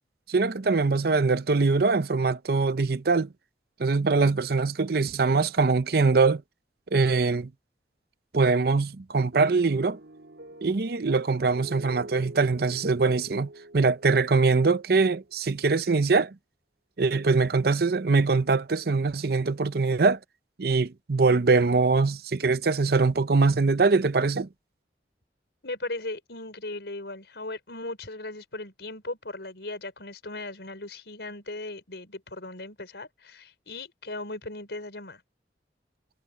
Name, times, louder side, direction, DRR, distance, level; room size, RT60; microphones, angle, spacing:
voice 1, 0.3-3.3 3.8-6.4 6.9-7.5 8.3-10.0 10.6-16.3 17.0-20.2 20.6-24.5, right 4 dB, 60° right, 0.7 m, -23 dB
sound 1, 9.3-15.4, right 1 dB, 85° right, 3.2 m, -45 dB
voice 2, 25.6-35.2, left 2 dB, 70° left, 5.1 m, -37 dB
head